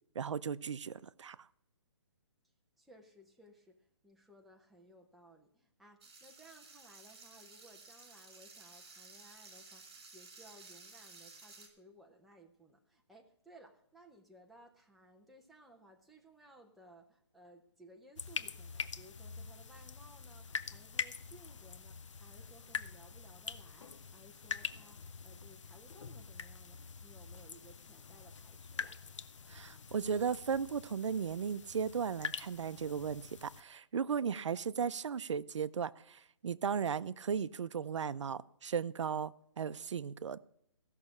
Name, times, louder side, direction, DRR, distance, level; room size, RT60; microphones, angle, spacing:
voice 1, 0.2-1.4 29.5-40.4, right 6 dB, 80° right, 0.6 m, -36 dB
voice 2, 2.8-29.0, right 1 dB, ahead, 0.6 m, -60 dB
sound 1, 6.0-11.7, right 4 dB, 55° right, 3.6 m, -55 dB
sound 2, 18.2-33.6, left 6 dB, 85° left, 0.9 m, -45 dB
15.5 x 6.5 x 7.1 m
hypercardioid pair, 165°, 15 cm